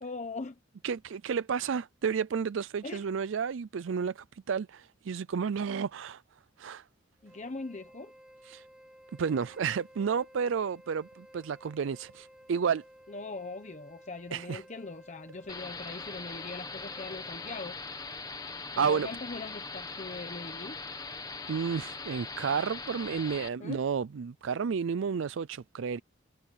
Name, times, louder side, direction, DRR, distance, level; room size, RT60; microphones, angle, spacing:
voice 1, 0.0-0.6 2.8-3.1 7.2-8.1 13.1-17.8 18.7-20.8 23.6-23.8, left 3 dB, 40° left, 1.0 m, -41 dB
voice 2, 0.8-6.2 6.6-6.8 8.5-8.6 9.1-12.8 14.3-14.6 18.8-19.1 21.5-26.0, right 6 dB, 75° right, 0.4 m, -31 dB
Wind instrument woodwind instrument, 7.2-17.8, equal, 5° right, 7.8 m, -55 dB
sound 1, 15.5-23.5, left 4 dB, 20° left, 1.7 m, -41 dB
head